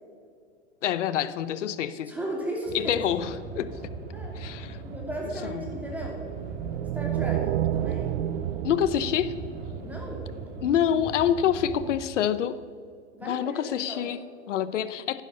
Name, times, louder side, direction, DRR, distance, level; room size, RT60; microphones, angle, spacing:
voice 1, 0.8-2.1 2.7-3.9 4.4-4.8 5.4-5.6 8.6-9.4 10.6-12.6 13.3-15.2, left 9 dB, 80° left, 14 dB, 0.9 m, -27 dB
voice 2, 2.1-3.0 4.1-4.4 4.8-6.2 6.9-7.5 7.7-8.2 9.8-10.5 13.1-14.1, right 1 dB, 5° right, -2 dB, 2.8 m, -36 dB
sound 1, 2.6-12.0, right 4 dB, 25° right, 1.8 m, -39 dB
sound 2, 6.0-10.4, right 12 dB, 75° right, 0.6 m, -30 dB
11.5 x 11.0 x 5.6 m, 2.2 s
hypercardioid pair, 140°, 36 cm